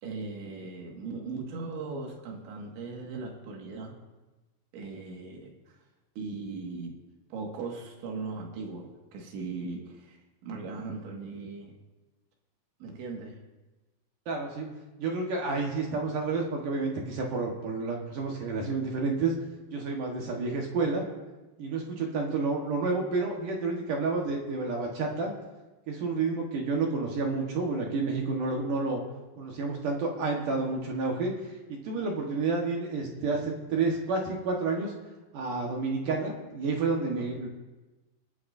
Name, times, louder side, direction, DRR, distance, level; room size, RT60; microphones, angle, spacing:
voice 1, 0.0-4.0 4.7-5.8 6.2-7.0 7.3-10.2 10.4-11.7 12.8-13.4, right 4 dB, 85° right, 0 dB, 4.3 m, -38 dB
voice 2, 14.3-14.7 15.0-19.3 19.7-21.0 21.6-25.3 25.9-29.0 29.4-34.9 35.3-37.5, right 3 dB, 60° right, 0 dB, 2.5 m, -30 dB
28.5 x 11.0 x 2.7 m, 1.2 s
omnidirectional pair, 5.1 m